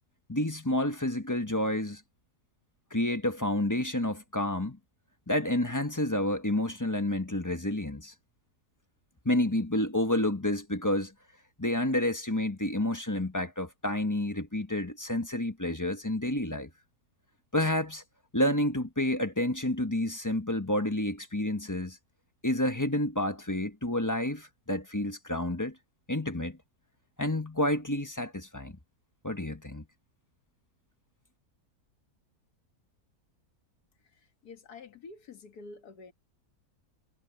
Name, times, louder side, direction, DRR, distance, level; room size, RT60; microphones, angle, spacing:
voice 1, 0.3-2.0 2.9-4.8 5.3-8.1 9.2-11.1 11.6-16.7 17.5-18.0 18.3-22.0 22.4-25.7 26.1-26.6 27.2-28.8 29.2-29.8, left 1 dB, 15° left, 1.3 m, -29 dB
voice 2, 34.4-36.1, left 4 dB, 90° left, 2.2 m, -47 dB
omnidirectional pair, 1.6 m